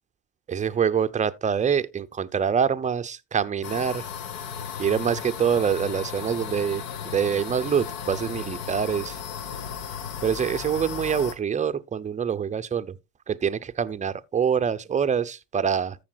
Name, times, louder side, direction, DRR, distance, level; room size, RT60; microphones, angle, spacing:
voice 1, 0.5-4.1 4.8-9.2 10.2-12.9 13.3-16.0, right 7 dB, 15° right, 0.6 m, -25 dB
sound 1, 3.6-11.3, left 7 dB, 60° left, 1.4 m, -35 dB
14.0 x 7.0 x 2.3 m
hypercardioid pair, 90°, 48 cm